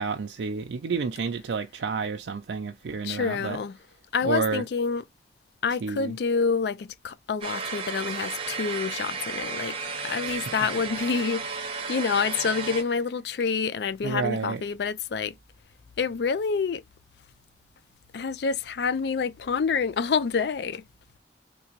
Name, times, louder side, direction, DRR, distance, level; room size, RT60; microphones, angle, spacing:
voice 1, 0.0-3.6 4.2-4.6 5.8-6.2 10.2-10.5 14.0-14.6, right 5 dB, 90° right, 0.4 m, -30 dB
voice 2, 3.0-3.8 4.1-5.0 5.6-9.8 10.0-15.3 16.0-16.8 18.1-20.8, left 5 dB, 65° left, 0.4 m, -27 dB
sound 1, 7.4-12.8, right 5 dB, 30° right, 0.8 m, -33 dB
3.4 x 2.9 x 2.8 m
head